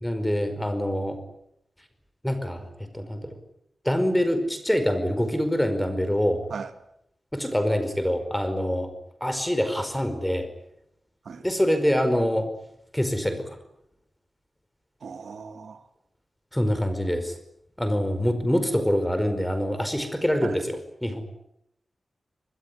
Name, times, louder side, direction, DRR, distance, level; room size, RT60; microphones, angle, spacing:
voice 1, 0.0-1.2 2.2-3.3 3.8-6.4 7.3-8.9 9.2-10.5 11.4-12.5 12.9-13.6 16.5-17.3 17.8-20.7 21.0-21.2, equal, 5° left, 4.9 m, -25 dB
voice 2, 15.0-15.8 20.4-20.6, right 5 dB, 85° right, 2.2 m, -37 dB
25.5 x 21.0 x 9.9 m
wide cardioid pair, 120°, 0 cm